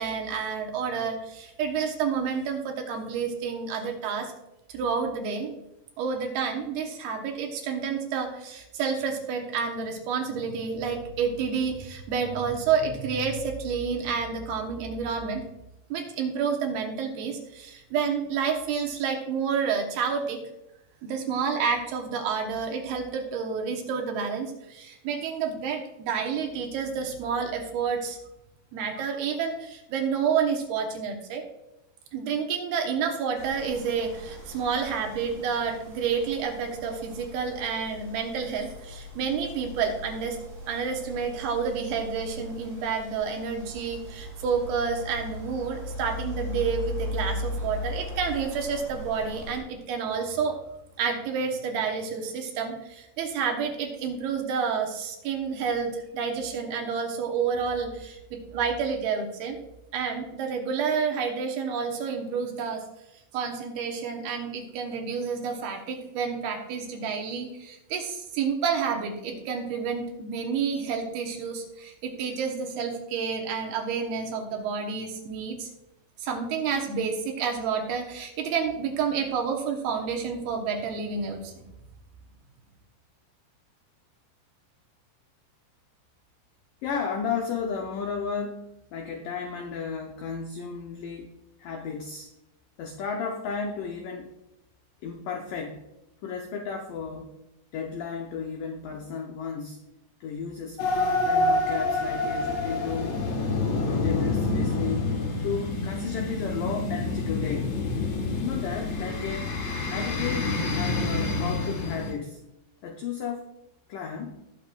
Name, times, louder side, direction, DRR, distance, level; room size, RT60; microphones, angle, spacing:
voice 1, 0.0-4.3 4.7-5.5 6.0-15.4 15.9-20.4 21.0-28.2 28.7-31.4 32.1-40.4 40.7-50.6 51.0-59.6 59.9-62.8 63.3-75.7 76.2-81.7, right 6 dB, 70° right, 3 dB, 2.9 m, -29 dB
sound 1, 33.3-49.6, left 1 dB, 35° right, 4.4 m, -38 dB
voice 2, 86.8-92.3 92.8-94.3 95.0-95.8 96.2-97.4 97.7-99.8 100.2-103.2 103.9-105.1 105.4-107.8 108.4-109.6 109.9-112.4 112.8-113.5 113.9-114.5, left 6 dB, 85° left, 2 dB, 1.8 m, -33 dB
sound 2, 100.8-112.1, left 3 dB, 60° left, 1.9 m, -27 dB
20.0 x 7.2 x 2.4 m, 0.88 s
omnidirectional pair, 4.9 m